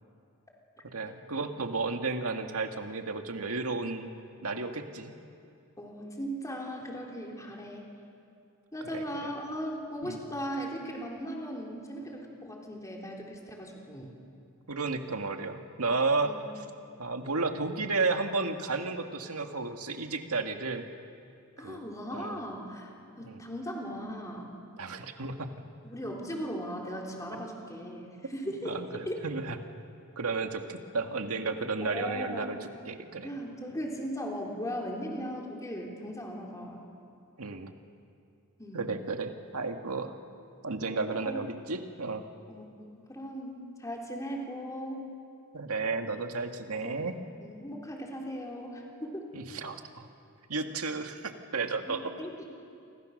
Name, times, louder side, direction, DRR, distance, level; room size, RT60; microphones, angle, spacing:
voice 1, 0.8-4.1 4.4-5.1 8.9-9.0 10.0-10.2 14.7-16.3 17.0-20.9 21.6-21.8 22.1-22.4 23.3-23.4 24.8-25.5 28.6-29.6 30.2-32.6 32.9-33.3 37.4-37.7 38.7-40.2 40.6-42.2 45.5-47.2 49.3-50.1 50.5-52.0, right 3 dB, 75° right, 5 dB, 2.0 m, -33 dB
voice 2, 5.8-7.9 8.7-14.1 16.2-16.4 21.6-22.9 23.2-24.5 25.8-29.3 31.8-32.5 33.2-36.8 38.6-38.9 41.2-41.4 42.5-45.0 46.7-47.0 47.4-49.3 51.9-52.5, equal, 15° left, -1 dB, 3.8 m, -38 dB
28.5 x 25.5 x 6.6 m, 2.5 s
head